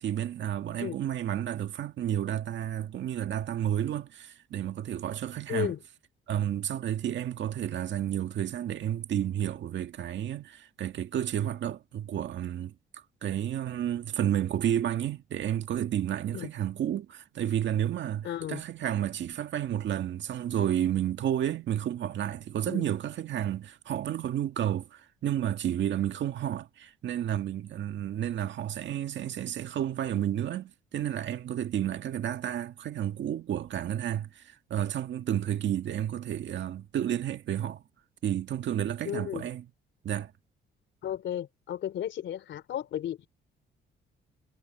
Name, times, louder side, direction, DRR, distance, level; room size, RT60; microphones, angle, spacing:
voice 1, 0.0-5.7 6.3-37.8 38.2-39.6 40.0-40.3, right 10 dB, 70° right, 1.8 m, -31 dB
voice 2, 5.5-5.8 16.3-16.5 18.2-18.6 22.7-22.8 39.0-39.4 41.0-43.2, left 11 dB, 70° left, 3.1 m, -34 dB
cardioid pair, 90°, 20 cm